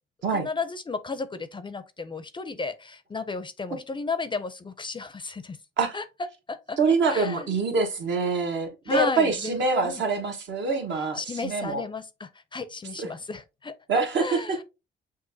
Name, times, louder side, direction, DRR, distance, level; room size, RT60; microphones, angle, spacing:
voice 1, 0.3-5.6 5.9-6.0 6.5-6.8 7.1-7.5 8.9-10.0 11.2-13.7 14.2-14.6, left 4 dB, 25° left, 0.5 m, -33 dB
voice 2, 6.8-11.8 13.0-13.1 13.9-14.6, right 4 dB, 65° right, 1.2 m, -25 dB
6.2 x 2.5 x 2.7 m
cardioid pair, 90°, 20 cm